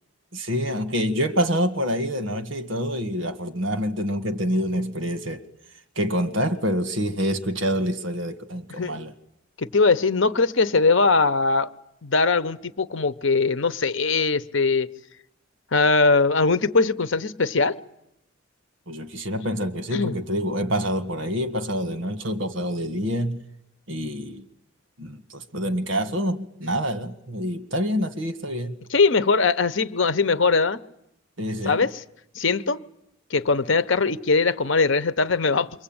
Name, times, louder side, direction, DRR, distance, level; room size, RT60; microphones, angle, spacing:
voice 1, 0.3-5.4 6.0-9.1 18.9-23.4 23.9-24.5 25.0-28.8 31.4-31.9, equal, 70° right, 1.8 m, -27 dB
voice 2, 9.6-11.7 12.0-14.9 15.7-17.7 19.9-20.1 28.9-30.8 31.6-31.9 32.4-32.8 33.3-35.7, left 4 dB, 70° left, 1.0 m, -21 dB
28.0 x 23.5 x 8.9 m
head